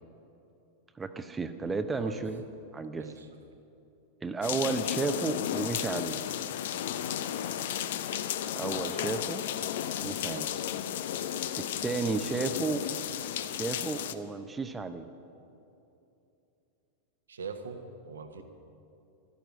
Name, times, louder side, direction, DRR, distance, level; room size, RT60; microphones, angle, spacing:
voice 1, 1.0-2.4 2.7-3.1 4.2-6.2 8.4-9.4 10.0-10.5 11.6-12.9 13.5-15.1, right 4 dB, 15° right, 10 dB, 0.7 m, -33 dB
voice 2, 2.9-3.3 4.4-4.5 10.2-10.6 12.2-12.4 17.3-18.4, right 5 dB, 70° right, 7 dB, 1.2 m, -43 dB
sound 1, 4.4-14.1, left 10 dB, 55° left, 0.6 m, -33 dB
12.5 x 12.0 x 7.7 m, 2.8 s
figure-of-eight pair, 90°, 0 cm